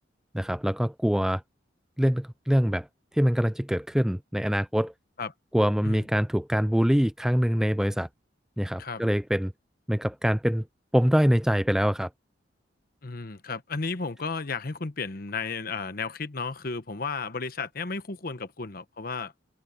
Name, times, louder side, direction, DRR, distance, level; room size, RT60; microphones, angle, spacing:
voice 1, 0.3-1.4 2.0-2.9 3.1-4.9 5.5-8.1 8.6-9.5 9.9-10.7 10.9-12.1, equal, 5° right, 0.4 m, -24 dB
voice 2, 13.0-19.3, left 4 dB, 55° left, 1.1 m, -33 dB
head